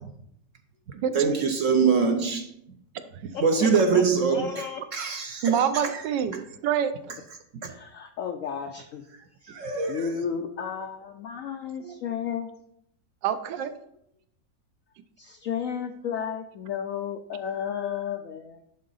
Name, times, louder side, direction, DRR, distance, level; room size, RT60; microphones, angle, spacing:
voice 1, 1.1-2.5 3.4-4.6 4.9-6.0 7.6-7.7 9.5-10.1, right 5 dB, 60° right, 0.9 m, -24 dB
voice 2, 3.3-4.0 4.3-4.8 7.7-9.0 9.4-9.6 9.9-12.5 15.2-18.6, left 7 dB, 75° left, 0.7 m, -33 dB
voice 3, 5.4-6.9 11.8-11.9 13.2-13.7, right 8 dB, 80° right, 1.3 m, -26 dB
11.0 x 3.8 x 3.9 m
omnidirectional pair, 1.9 m